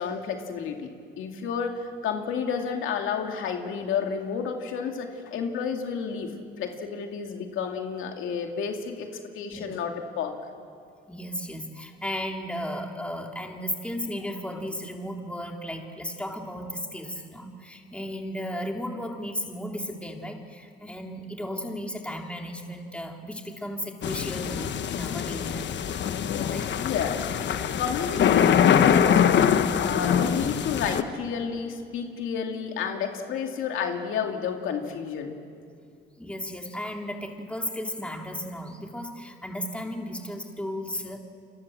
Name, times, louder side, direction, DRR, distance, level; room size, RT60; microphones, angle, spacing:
voice 1, 0.0-6.3 6.6-9.1 9.3-10.3 26.5-29.4 29.8-35.3, left 6 dB, 85° left, 3 dB, 2.6 m, -31 dB
voice 2, 11.1-25.8 26.5-26.7 36.2-41.2, equal, 5° left, 2 dB, 3.3 m, -35 dB
sound 1, 24.0-31.0, left 8 dB, 65° left, 1.3 m, -23 dB
29.5 x 25.0 x 7.7 m, 2.4 s
cardioid pair, 90°, 20 cm